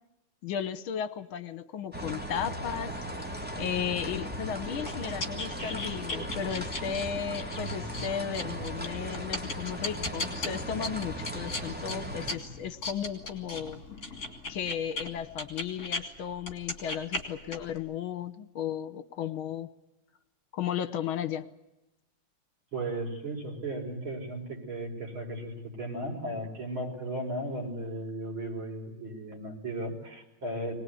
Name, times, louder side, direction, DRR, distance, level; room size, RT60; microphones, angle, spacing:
voice 1, 0.4-2.9 3.6-13.8 14.5-19.7 20.5-21.5, left 8 dB, 75° left, 12 dB, 1.9 m, -35 dB
sound 1, 1.9-12.4, right 1 dB, 5° right, 2.1 m, -37 dB
sound 2, 4.1-16.0 16.4-17.8, left 3 dB, 45° left, 3.4 m, -38 dB
voice 2, 22.7-30.7, right 1 dB, 70° right, 1 dB, 5.8 m, -36 dB
22.5 x 20.0 x 9.4 m, 0.96 s
omnidirectional pair, 2.3 m